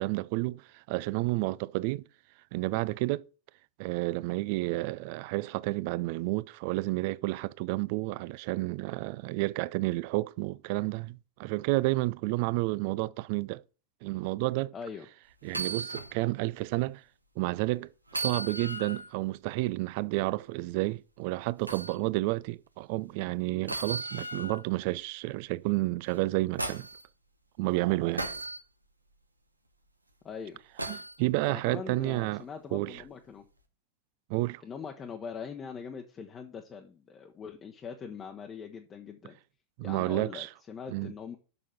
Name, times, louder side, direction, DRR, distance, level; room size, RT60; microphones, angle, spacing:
voice 1, 0.0-2.0 2.5-3.3 3.8-13.6 14.0-14.7 15.4-17.0 17.4-26.9 27.6-28.3 30.9-32.4 32.7-33.0 34.3-34.6 39.8-40.5 40.9-41.1, right 20 dB, 45° right, 0.4 m, -30 dB
voice 2, 14.7-15.1 30.2-30.6 31.5-33.4 34.6-39.4 39.8-41.4, left 6 dB, 25° left, 0.9 m, -42 dB
sound 1, 15.5-16.1 16.6-16.7 18.1-19.1 21.7-21.9 23.7-24.6 26.1-27.0 28.2-28.6 30.8-31.2 32.9-33.1, right 2 dB, 85° right, 1.0 m, -36 dB
6.9 x 6.1 x 6.7 m
figure-of-eight pair, 90°, 0 cm